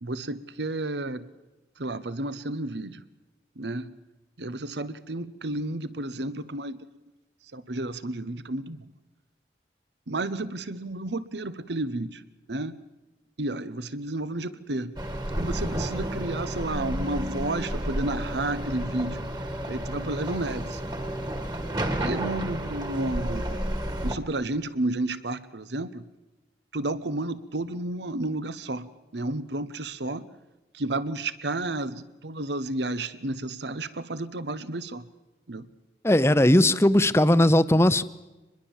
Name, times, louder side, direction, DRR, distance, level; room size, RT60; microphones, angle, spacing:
voice 1, 0.0-1.3 1.8-3.0 3.6-3.9 4.4-6.8 7.5-8.8 10.1-12.2 12.5-12.7 13.4-14.9 15.4-19.2 19.7-20.8 22.0-23.6 24.0-26.0 26.7-30.3 30.7-35.0 35.5-35.7, right 2 dB, 80° right, 15 dB, 1.1 m, -31 dB
sound 1, 15.0-24.2, right 1 dB, 25° right, 1.9 m, -31 dB
voice 2, 36.0-38.0, left 1 dB, 15° left, 14 dB, 0.7 m, -18 dB
25.0 x 21.0 x 7.3 m, 1.1 s
head